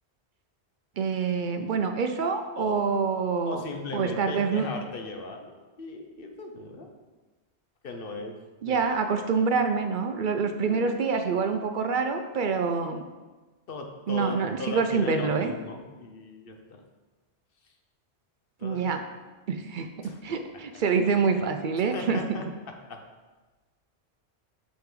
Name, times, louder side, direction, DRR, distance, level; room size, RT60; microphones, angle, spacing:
voice 1, 1.0-3.6 3.9-4.7 8.6-13.0 14.1-15.5 18.6-19.0 19.5-22.4, right 5 dB, 55° right, 7 dB, 0.6 m, -26 dB
voice 2, 3.4-6.9 7.8-8.4 8.6-8.8 9.2-9.3 10.7-11.0 13.7-16.8 18.6-18.8 20.0-20.2 21.8-22.5 22.9-23.0, left 3 dB, 55° left, 4 dB, 1.0 m, -38 dB
6.5 x 5.7 x 3.8 m, 1.3 s
omnidirectional pair, 1.2 m